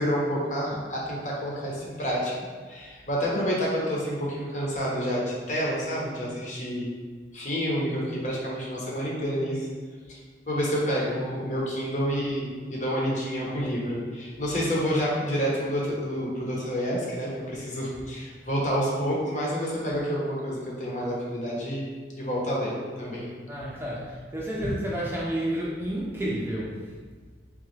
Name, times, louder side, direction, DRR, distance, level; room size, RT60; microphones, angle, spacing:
voice 1, 0.0-2.3 2.7-6.9 7.3-9.7 10.1-10.2 10.5-21.9 22.2-23.3, equal, 45° left, -5 dB, 1.0 m, -28 dB
voice 2, 23.5-26.8, right 1 dB, 15° right, -6 dB, 0.6 m, -30 dB
3.8 x 3.5 x 3.3 m, 1.5 s
head